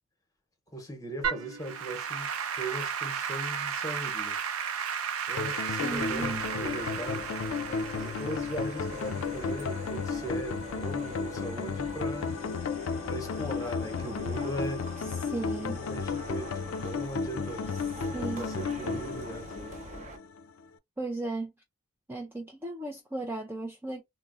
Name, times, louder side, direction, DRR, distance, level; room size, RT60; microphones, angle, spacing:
voice 1, 0.7-4.4 5.3-7.3 7.9-12.3 13.1-14.9 15.6-17.7 18.3-19.8, right 1 dB, 15° left, 0.9 m, -39 dB
Applause / Keyboard (musical), 1.2-10.6, right 7 dB, 75° right, 0.5 m, -34 dB
sound 1, 5.4-20.4, left 5 dB, 70° left, 0.4 m, -34 dB
voice 2, 5.8-6.4 15.2-15.8 18.1-18.5 21.0-21.5 22.1-24.0, right 2 dB, 10° right, 0.3 m, -35 dB
sound 2, 5.9-20.2, right 1 dB, 35° right, 0.7 m, -44 dB
3.6 x 2.0 x 2.4 m
head